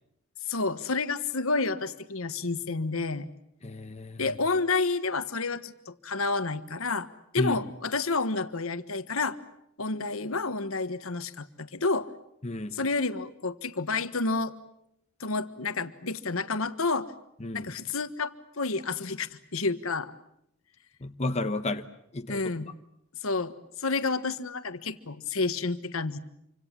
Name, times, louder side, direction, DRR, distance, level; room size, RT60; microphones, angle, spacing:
voice 1, 0.5-3.3 4.2-7.1 7.3-9.4 9.8-12.1 12.7-14.5 15.2-17.1 17.5-20.1 22.3-22.7 23.2-23.5 23.8-26.2, left 3 dB, 70° left, 11 dB, 1.4 m, -30 dB
voice 2, 3.6-4.2 7.4-7.6 12.4-12.8 17.4-17.7 21.0-21.9 22.1-22.4, left 2 dB, 30° left, 7 dB, 1.1 m, -31 dB
27.5 x 25.5 x 7.5 m, 0.78 s
head